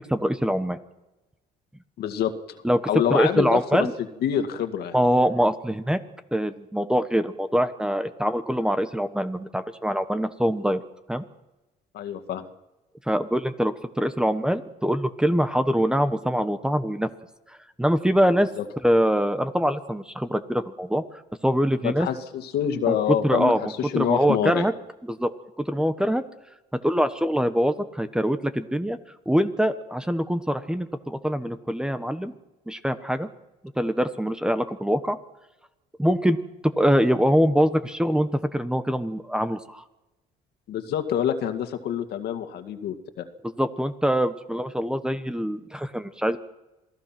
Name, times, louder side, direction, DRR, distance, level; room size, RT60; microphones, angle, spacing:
voice 1, 0.1-0.8 2.6-2.8 3.1-3.9 4.9-6.0 6.3-10.8 11.1-11.2 13.1-17.1 17.8-18.5 18.8-21.0 21.4-22.1 22.9-23.0 23.2-24.7 25.1-25.3 25.6-26.2 26.8-29.0 29.3-32.3 32.7-33.3 33.8-35.2 36.0-36.4 36.8-39.8 43.6-46.4, equal, 5° right, 10 dB, 1.2 m, -23 dB
voice 2, 2.0-2.3 2.9-3.9 4.2-5.0 11.9-12.5 18.6-18.7 21.8-24.7 40.7-43.3, left 9 dB, 70° left, 7 dB, 2.2 m, -26 dB
27.5 x 18.5 x 6.0 m, 1.0 s
cardioid pair, 110°, 17 cm